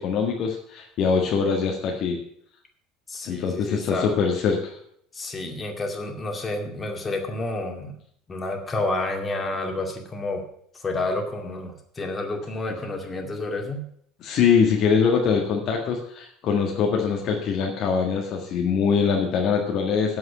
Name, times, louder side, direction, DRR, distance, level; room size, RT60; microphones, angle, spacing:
voice 1, 0.0-2.2 3.2-4.7 14.2-20.2, left 6 dB, 45° left, 1 dB, 1.7 m, -23 dB
voice 2, 3.1-4.2 5.1-8.0 8.3-10.4 10.7-13.8, left 2 dB, 25° left, 3 dB, 2.2 m, -30 dB
8.3 x 7.7 x 8.5 m, 0.66 s
figure-of-eight pair, 70°, 0 cm